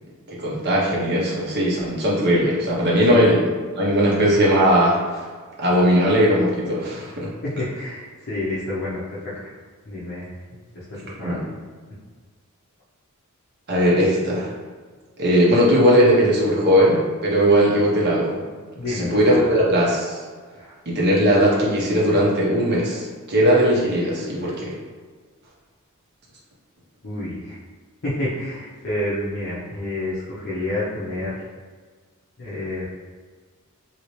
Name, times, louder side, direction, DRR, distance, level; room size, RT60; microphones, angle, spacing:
voice 1, 0.3-3.4 3.8-5.3 5.6-7.3 11.2-11.4 13.7-14.5 15.2-18.4 18.9-20.2 20.9-24.8, equal, 50° right, -5 dB, 0.9 m, -19 dB
voice 2, 7.4-9.5 9.8-10.3 10.7-11.5 18.7-19.5 20.5-20.7 27.0-27.6 28.0-31.4 32.4-32.9, left 1 dB, 50° left, -10 dB, 0.7 m, -29 dB
2.8 x 2.8 x 3.0 m, 1.5 s
head